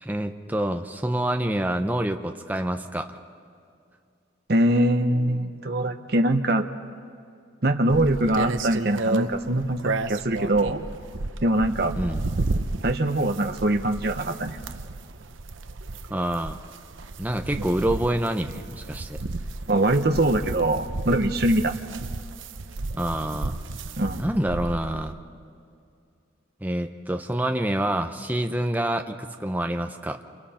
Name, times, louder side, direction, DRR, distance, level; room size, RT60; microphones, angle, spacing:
voice 1, 0.0-3.2 12.0-12.3 16.1-16.6 17.2-19.2 22.9-23.6 24.2-25.2 26.6-30.2, right 1 dB, 10° right, 5 dB, 0.8 m, -27 dB
voice 2, 4.5-6.7 7.6-10.8 11.4-11.9 12.8-14.6 17.6-17.7 19.7-21.7 24.0-24.2, right 1 dB, 50° right, 6 dB, 1.0 m, -23 dB
sound 1, 7.9-25.1, right 2 dB, 80° right, 0.8 m, -33 dB
29.5 x 29.0 x 4.4 m, 2.4 s
head